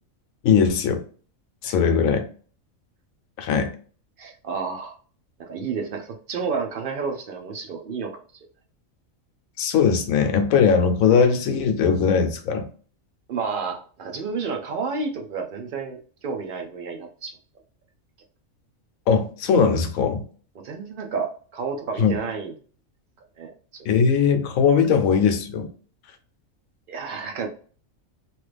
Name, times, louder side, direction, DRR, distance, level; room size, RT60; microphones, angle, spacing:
voice 1, 0.4-1.0 1.6-2.2 3.4-3.7 9.6-12.7 19.1-20.2 22.0-22.1 23.8-25.7, left 6 dB, 80° left, 7 dB, 1.0 m, -20 dB
voice 2, 4.2-4.9 5.4-8.1 13.3-17.4 20.6-22.5 23.4-23.9 26.9-27.5, right 5 dB, 75° right, 2 dB, 0.5 m, -30 dB
2.9 x 2.4 x 3.2 m, 0.43 s
omnidirectional pair, 1.4 m